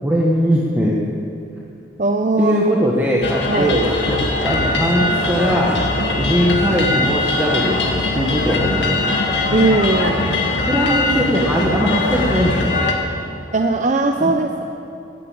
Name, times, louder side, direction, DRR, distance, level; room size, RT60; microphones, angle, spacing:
voice 1, 0.0-1.0 2.4-5.8 6.2-9.2 10.7-12.7 14.2-14.3, equal, 10° right, -4 dB, 1.3 m, -20 dB
voice 2, 2.0-2.6 3.5-3.7 9.5-10.3 13.5-14.6, right 3 dB, 40° right, 4 dB, 0.6 m, -18 dB
sound 1, 3.2-12.9, left 2 dB, 65° left, 1.9 m, -21 dB
14.5 x 11.0 x 8.7 m, 2.8 s
head